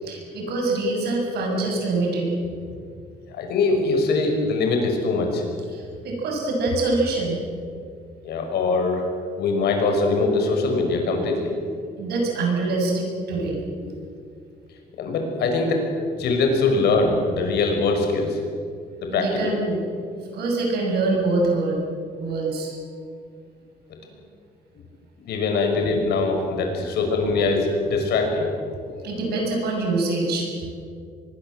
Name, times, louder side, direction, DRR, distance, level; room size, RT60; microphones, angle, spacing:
voice 1, 0.0-2.3 5.7-7.4 12.0-13.6 19.1-19.9 20.3-21.8 22.2-22.8 29.0-30.5, right 3 dB, 75° right, 1 dB, 7.1 m, -24 dB
voice 2, 3.3-5.4 8.2-9.0 9.4-11.6 13.8-13.9 15.0-15.8 16.2-18.4 19.0-19.5 25.2-28.5, left 3 dB, 80° left, 3 dB, 5.9 m, -22 dB
24.5 x 21.5 x 7.7 m, 2.2 s
cardioid pair, 150°, 17 cm